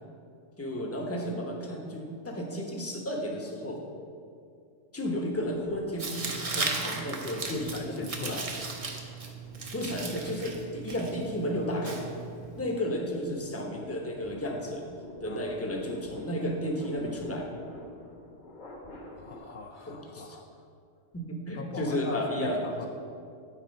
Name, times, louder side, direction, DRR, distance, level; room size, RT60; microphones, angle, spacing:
voice 1, 0.6-3.8 4.9-8.4 9.7-12.0 12.6-14.9 15.2-17.5 19.9-20.4 21.1-22.7, equal, 15° left, 0 dB, 0.8 m, -33 dB
sound 1, 5.3-6.8 7.3-19.4, left 2 dB, 40° left, 1.0 m, -51 dB
Tearing, 6.0-12.6, right 3 dB, 35° right, 0.7 m, -36 dB
voice 2, 7.5-8.7 15.3-15.5 19.1-20.6 21.5-22.9, left 4 dB, 65° left, 4 dB, 0.4 m, -41 dB
9.7 x 4.2 x 5.3 m, 2.4 s
omnidirectional pair, 1.3 m